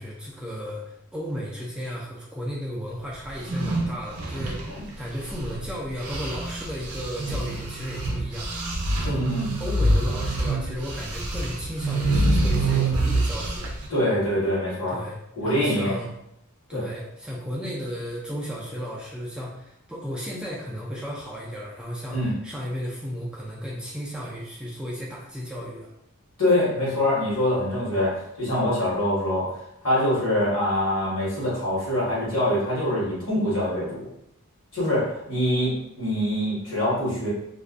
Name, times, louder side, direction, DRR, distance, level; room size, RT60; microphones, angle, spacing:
voice 1, 0.0-8.5 9.0-13.7 14.9-15.2 15.4-16.1 16.7-25.9, equal, 5° right, -5 dB, 0.3 m, -34 dB
sound 1, 3.3-5.7 6.0-13.9, right 2 dB, 80° right, 0.5 m, -26 dB
voice 2, 9.0-9.5 13.9-15.0 15.4-16.0 16.7-16.8 22.1-22.3 26.4-29.5 29.8-34.1 34.7-37.3, left 1 dB, 65° left, -7 dB, 1.2 m, -24 dB
2.4 x 2.1 x 2.4 m, 0.79 s
head